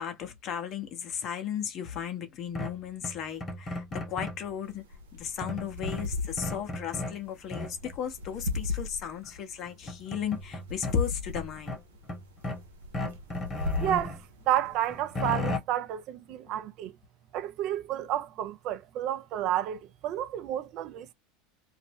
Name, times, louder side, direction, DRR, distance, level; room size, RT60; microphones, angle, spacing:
voice 1, 0.0-4.8 5.1-11.8, left 8 dB, 45° left, 1.0 m, -35 dB
sound 1, 2.6-4.5 5.4-7.2 7.5-7.9 9.2-9.3 9.7-11.0 11.3-12.7 12.9-14.2 14.6-15.6, left 2 dB, 30° left, 1.3 m, -35 dB
sound 2, 4.6-15.2, left 3 dB, 85° right, 0.7 m, -38 dB
voice 2, 13.8-16.9 17.3-21.1, right 12 dB, 55° right, 0.4 m, -31 dB
2.6 x 2.0 x 3.4 m
hypercardioid pair, 85°, 0 cm